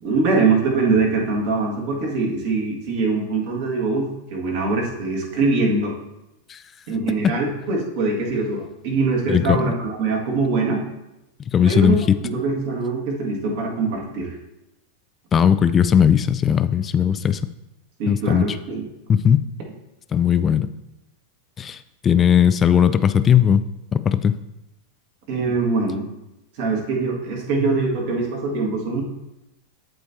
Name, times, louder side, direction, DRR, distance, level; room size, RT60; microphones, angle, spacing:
voice 1, 0.0-6.0 6.9-10.8 11.6-14.3 18.0-18.9 25.3-26.1 26.6-29.0, right 3 dB, 50° right, 0 dB, 1.8 m, -23 dB
voice 2, 9.3-9.7 11.5-12.2 15.3-17.4 18.1-18.5 19.1-19.5 20.1-20.7 21.6-21.8 22.0-23.6 23.9-24.3, left 8 dB, 25° left, 13 dB, 0.3 m, -17 dB
12.5 x 4.4 x 2.7 m, 0.93 s
figure-of-eight pair, 90°, 0 cm